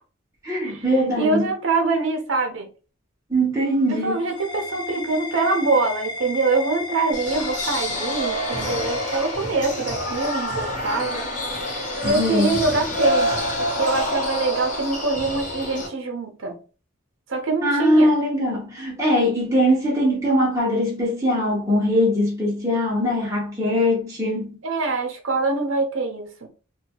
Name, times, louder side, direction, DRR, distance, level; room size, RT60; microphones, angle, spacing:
voice 1, 0.4-1.4 3.3-4.1 12.1-12.5 17.6-24.6, equal, 15° right, 0.8 m, -21 dB
voice 2, 1.2-2.7 3.9-11.3 12.0-16.6 17.3-18.1 24.6-26.5, right 3 dB, 60° right, 0.7 m, -24 dB
sound 1, 3.5-10.0, left 3 dB, 20° left, 0.4 m, -35 dB
sound 2, 7.1-15.9, equal, 35° left, 0.9 m, -27 dB
2.7 x 2.3 x 2.8 m
head